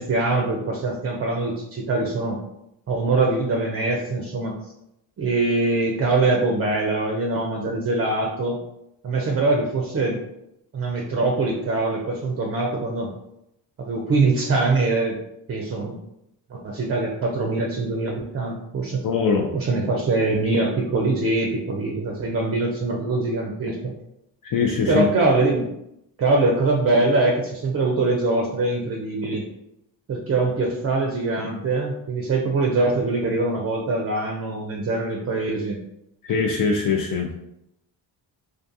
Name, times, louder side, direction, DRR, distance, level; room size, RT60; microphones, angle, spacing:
voice 1, 0.0-2.4 2.9-4.6 5.2-8.6 9.0-10.2 10.7-13.1 13.8-15.2 15.5-16.0 16.5-19.1 19.5-23.9 24.9-25.7 26.2-29.4 30.1-35.8, right 3 dB, 30° right, 0 dB, 0.5 m, -23 dB
voice 2, 19.0-19.5 24.4-25.1 36.2-37.3, left 5 dB, 45° left, 0 dB, 0.4 m, -22 dB
2.4 x 2.3 x 2.6 m, 0.82 s
supercardioid pair, 50°, 47 cm